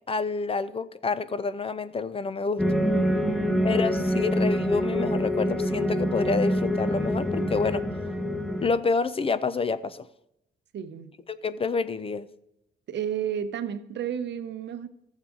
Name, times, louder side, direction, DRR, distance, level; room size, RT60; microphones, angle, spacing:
voice 1, 0.1-2.6 3.6-7.9 8.6-10.1 11.3-12.3, left 4 dB, 30° left, 0.4 m, -28 dB
sound 1, 2.6-8.7, equal, ahead, 1.0 m, -26 dB
voice 2, 10.7-11.1 12.9-14.9, right 9 dB, 60° right, 0.8 m, -32 dB
13.5 x 7.2 x 3.8 m
cardioid pair, 90°, 20 cm